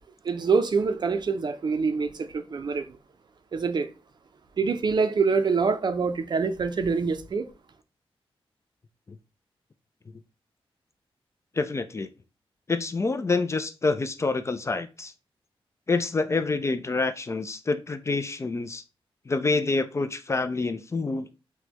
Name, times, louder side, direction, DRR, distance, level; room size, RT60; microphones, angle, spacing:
voice 1, 0.2-2.9 3.5-3.9 4.6-7.5, right 5 dB, 50° right, 0.5 m, -25 dB
voice 2, 11.5-12.1 12.7-15.1 15.9-18.8 19.3-21.3, left 3 dB, 30° left, 0.3 m, -27 dB
6.0 x 2.2 x 2.8 m
wide cardioid pair, 110°, 10 cm